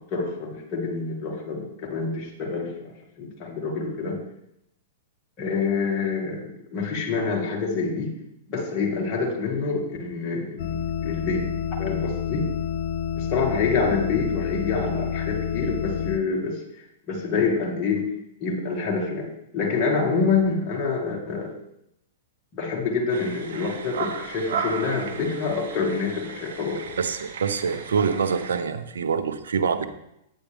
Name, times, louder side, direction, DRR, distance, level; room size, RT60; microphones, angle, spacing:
voice 1, 0.0-4.2 5.4-8.1 8.5-11.5 11.8-12.5 13.2-18.1 18.4-21.5 22.5-26.8, left 4 dB, 30° left, -3 dB, 1.9 m, -27 dB
sound 1, 10.6-16.2, left 8 dB, 60° left, 0.6 m, -29 dB
sound 2, 23.1-28.6, right 6 dB, 70° right, 1.3 m, -35 dB
voice 2, 27.0-29.9, right 6 dB, 90° right, 10 dB, 0.8 m, -25 dB
9.2 x 8.7 x 3.5 m, 0.81 s
hypercardioid pair, 135°, 0 cm